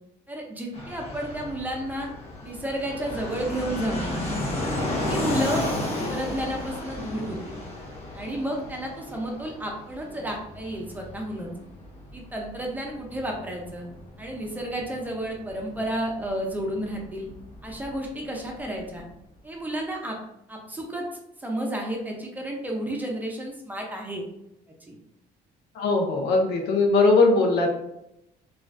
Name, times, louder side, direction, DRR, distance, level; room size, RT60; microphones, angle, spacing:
voice 1, 0.3-2.1 2.4-4.2 4.8-7.6 8.1-11.5 12.1-13.8 14.2-17.3 17.6-19.0 19.4-20.2 20.5-21.0 21.4-24.2 24.9-25.0, right 1 dB, 10° right, 0 dB, 0.6 m, -32 dB
Fixed-wing aircraft airplane, 0.7-19.1, left 1 dB, 35° left, 0.9 m, -34 dB
voice 2, 25.8-27.7, left 3 dB, 75° left, 2 dB, 0.6 m, -20 dB
3.0 x 2.4 x 2.5 m, 0.82 s
cardioid pair, 110°, 17 cm